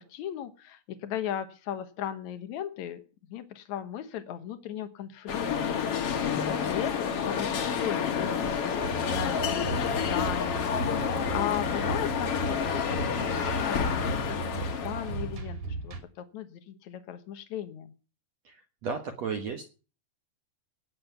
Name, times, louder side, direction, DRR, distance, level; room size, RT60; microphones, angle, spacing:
voice 1, 0.0-3.0 3.3-5.8 6.3-11.0 11.3-13.2 13.5-17.9, left 10 dB, 85° left, 9 dB, 1.6 m, -37 dB
sound 1, 5.3-15.3, left 7 dB, 60° left, 1.6 m, -29 dB
sound 2, 8.8-16.0, right 3 dB, 50° right, 3.9 m, -36 dB
voice 2, 18.4-19.6, right 5 dB, 65° right, 5 dB, 1.6 m, -34 dB
18.0 x 7.3 x 6.7 m, 0.36 s
omnidirectional pair, 5.0 m